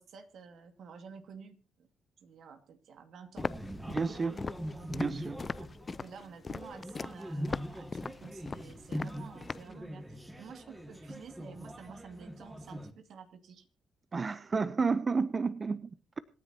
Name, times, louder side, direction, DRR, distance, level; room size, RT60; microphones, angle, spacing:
voice 1, 0.0-1.9 2.2-3.5 4.7-13.7, right 6 dB, 65° right, 8 dB, 2.1 m, -51 dB
Walk footsteps, 3.4-9.7, left 4 dB, 30° left, 0.5 m, -40 dB
sound 1, 3.4-12.9, equal, 10° right, 1.9 m, -42 dB
voice 2, 3.9-4.4 5.0-5.4 14.1-16.2, right 4 dB, 35° right, 14 dB, 0.7 m, -31 dB
26.0 x 10.0 x 2.8 m, 0.38 s
cardioid pair, 90°, 0 cm